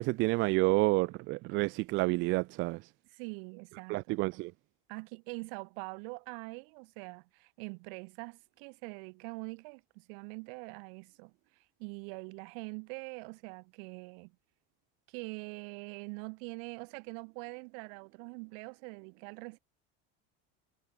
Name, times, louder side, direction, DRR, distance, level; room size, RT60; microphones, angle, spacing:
voice 1, 0.0-2.8 3.9-4.5, right 22 dB, 45° right, 0.4 m, -29 dB
voice 2, 3.1-4.2 4.9-11.3 11.8-14.3 15.1-19.6, right 40 dB or more, 70° right, 2.7 m, -44 dB
cardioid pair, 150°, 29 cm